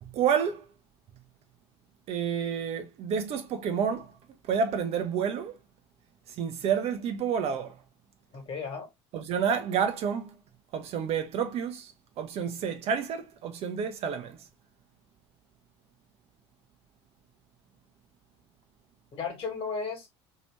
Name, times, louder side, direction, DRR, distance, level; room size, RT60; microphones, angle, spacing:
voice 1, 0.0-0.6 2.1-4.1 4.5-5.6 6.4-7.8 9.1-10.3 10.7-11.9 12.2-14.4, right 7 dB, 45° right, 0.6 m, -29 dB
voice 2, 8.3-8.9 19.1-20.2, left 5 dB, 40° left, 1.4 m, -35 dB
3.0 x 2.8 x 3.0 m
figure-of-eight pair, 60°, 15 cm